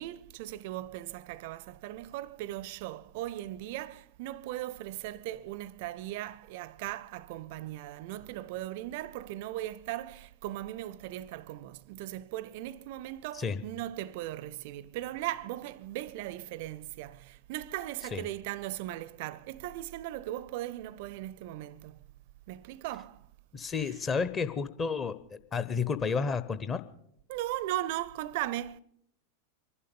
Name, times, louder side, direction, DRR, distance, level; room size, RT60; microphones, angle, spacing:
voice 1, 0.0-22.1 22.5-23.3 23.8-23.9 27.3-28.8, right 14 dB, 50° right, 0.5 m, -38 dB
voice 2, 23.5-26.8, left 5 dB, 25° left, 0.9 m, -31 dB
24.5 x 11.5 x 5.2 m
figure-of-eight pair, 90°, 0 cm